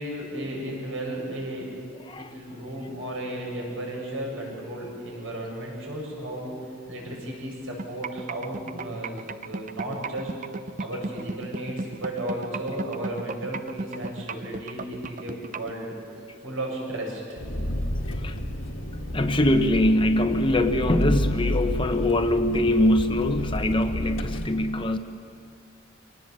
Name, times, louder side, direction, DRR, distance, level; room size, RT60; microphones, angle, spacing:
voice 1, 0.0-1.7 2.2-6.5 6.9-10.3 10.8-16.0 16.4-17.4, right 1 dB, 75° right, -2 dB, 7.7 m, -34 dB
sound 1, 7.8-15.7, right 3 dB, 40° right, 0.6 m, -33 dB
Engine, 17.4-24.5, left 1 dB, 70° left, 1.7 m, -30 dB
voice 2, 19.1-25.0, left 1 dB, 25° left, 7 dB, 0.8 m, -23 dB
25.5 x 18.5 x 7.4 m, 2.5 s
head